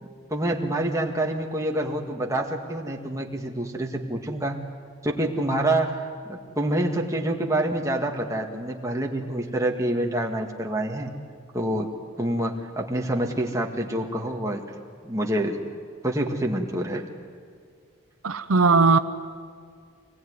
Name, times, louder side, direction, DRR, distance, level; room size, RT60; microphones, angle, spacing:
voice 1, 0.0-4.6 5.0-11.1 11.5-11.9 12.2-14.6 15.0-15.6 16.0-17.0, right 1 dB, 15° right, 1 dB, 1.8 m, -27 dB
voice 2, 18.2-19.0, right 4 dB, 80° right, 10 dB, 0.8 m, -18 dB
25.0 x 20.0 x 9.6 m, 2.1 s
head